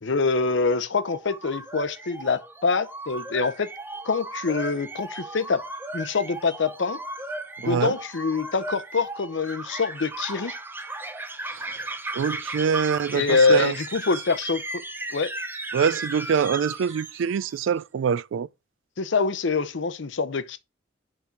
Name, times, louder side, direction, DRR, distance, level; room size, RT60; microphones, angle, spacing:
voice 1, 0.0-3.7 4.0-5.7 5.9-7.0 7.7-10.5 13.1-14.8 15.1-15.3 19.0-20.6, left 4 dB, 70° left, 0.7 m, -25 dB
sound 1, 1.0-17.6, right 2 dB, 10° right, 0.6 m, -36 dB
voice 2, 7.6-7.9 11.5-11.8 12.1-13.7 15.7-18.5, right 7 dB, 80° right, 0.3 m, -25 dB
5.3 x 4.6 x 5.8 m
head